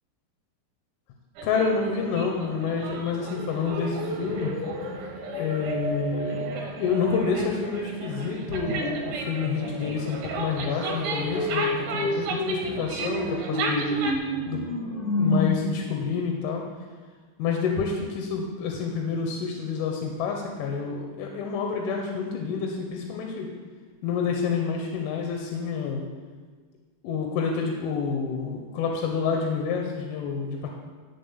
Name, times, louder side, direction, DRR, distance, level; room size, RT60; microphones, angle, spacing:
voice 1, 1.4-4.5 5.4-6.4 6.8-14.2 14.4-14.6 15.2-16.7 17.4-23.5 24.0-26.0 27.0-30.7, left 5 dB, 90° left, 1 dB, 3.5 m, -28 dB
sound 1, 1.4-14.1, right 4 dB, 70° right, 2.5 m, -35 dB
sound 2, 3.6-7.3 8.5-15.4, left 1 dB, 45° left, 1.1 m, -31 dB
12.5 x 4.3 x 8.1 m, 1.5 s
omnidirectional pair, 5.3 m